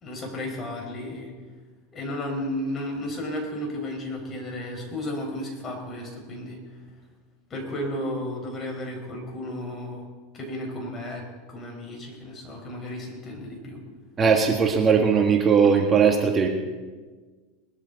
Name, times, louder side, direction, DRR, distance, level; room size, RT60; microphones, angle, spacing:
voice 1, 0.0-1.3 1.9-6.6 7.5-10.1 10.3-13.8, left 1 dB, 30° left, 1 dB, 4.9 m, -33 dB
voice 2, 14.2-16.5, right 6 dB, 25° right, 2 dB, 1.6 m, -19 dB
20.5 x 13.5 x 4.0 m, 1.4 s
supercardioid pair, 115°, 0 cm